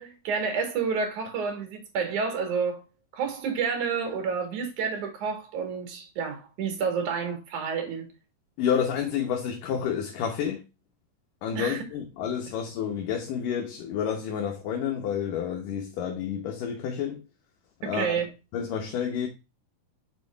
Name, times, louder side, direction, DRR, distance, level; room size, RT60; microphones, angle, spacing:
voice 1, 0.0-2.8 3.1-8.1 11.6-11.8 17.8-18.3, right 5 dB, 65° right, 3.0 m, -29 dB
voice 2, 8.6-10.6 11.4-17.2 17.8-18.2 18.5-19.3, left 8 dB, 80° left, 2.6 m, -29 dB
5.9 x 5.0 x 3.3 m
omnidirectional pair, 3.9 m